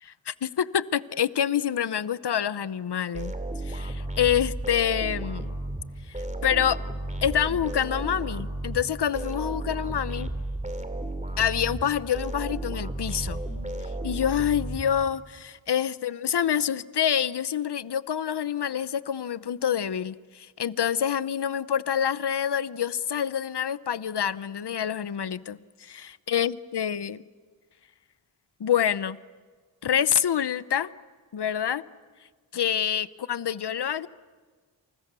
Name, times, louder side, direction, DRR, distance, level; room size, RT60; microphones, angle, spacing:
voice 1, 0.0-3.3 3.6-5.5 6.1-6.8 7.2-10.3 11.4-13.4 14.0-27.2 28.6-29.2 29.8-30.9 31.3-31.8 32.5-34.1, left 9 dB, 60° left, 16 dB, 0.9 m, -27 dB
sound 1, 3.1-15.4, right 1 dB, 15° right, 2.6 m, -33 dB
29.0 x 28.5 x 6.9 m, 1.5 s
wide cardioid pair, 115°, 46 cm